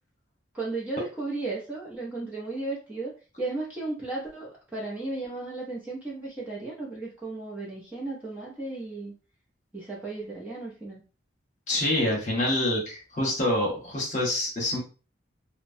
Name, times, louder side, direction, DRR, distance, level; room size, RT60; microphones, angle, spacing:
voice 1, 0.5-3.1 3.4-9.1 9.7-11.0, right 2 dB, 10° right, -6 dB, 0.6 m, -35 dB
voice 2, 11.7-14.8, left 1 dB, 40° left, -2 dB, 1.0 m, -26 dB
2.9 x 2.1 x 2.6 m, 0.34 s
head